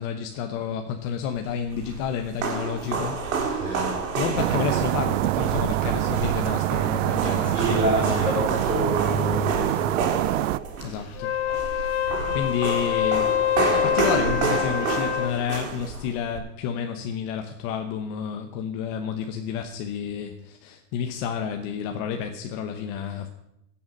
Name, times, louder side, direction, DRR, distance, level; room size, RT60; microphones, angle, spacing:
voice 1, 0.0-8.5 10.8-11.3 11.7-12.0 12.3-23.3, left 7 dB, 35° left, 1.0 m, -30 dB
sound 1, 1.4-16.4, right 5 dB, 85° right, 3.6 m, -30 dB
voice 2, 3.6-4.1 7.5-10.2, right 1 dB, 10° right, 5.2 m, -27 dB
sound 2, 4.4-10.6, right 16 dB, 70° right, 0.6 m, -25 dB
Wind instrument woodwind instrument, 11.1-15.4, left 10 dB, 55° left, 1.4 m, -25 dB
16.0 x 7.1 x 6.4 m
supercardioid pair, 165°, 39 cm